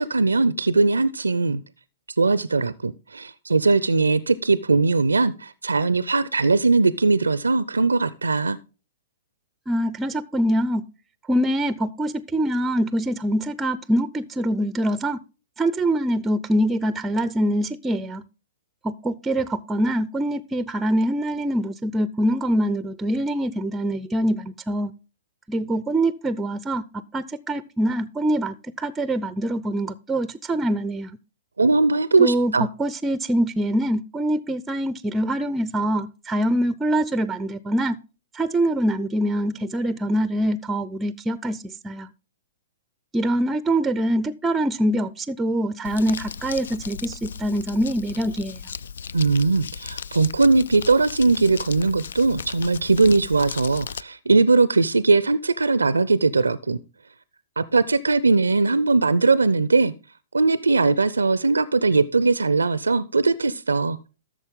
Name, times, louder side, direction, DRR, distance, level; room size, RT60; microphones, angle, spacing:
voice 1, 0.0-1.6 2.2-8.6 31.6-32.7 49.1-56.8 57.6-59.9 60.3-64.0, right 3 dB, 85° right, 0.5 m, -20 dB
voice 2, 9.7-10.8 11.3-15.2 15.6-18.2 18.8-24.9 25.5-26.8 27.1-31.1 32.2-38.0 38.3-42.1 43.1-48.6, right 1 dB, 10° right, 0.5 m, -24 dB
Crumpling crinkling, 45.8-54.0, left 7 dB, 70° left, 0.4 m, -36 dB
13.0 x 6.5 x 3.7 m
hypercardioid pair, 115°, 0 cm